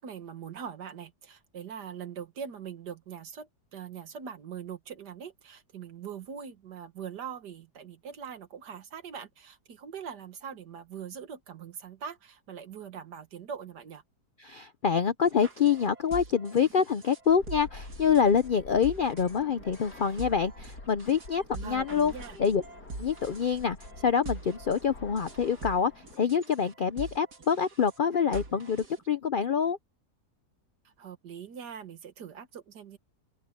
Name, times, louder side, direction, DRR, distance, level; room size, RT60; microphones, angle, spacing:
voice 1, 0.0-14.0 21.5-22.4 31.0-33.0, right 7 dB, 90° right, 2.0 m, -42 dB
voice 2, 14.4-22.1 22.4-22.6 23.0-23.8 24.0-29.8, left 7 dB, 70° left, 0.5 m, -26 dB
sound 1, 15.3-29.1, right 2 dB, 75° right, 3.4 m, -44 dB
Fixed-wing aircraft airplane, 17.3-26.1, left 2 dB, 85° left, 3.7 m, -48 dB
open air
omnidirectional pair, 1.7 m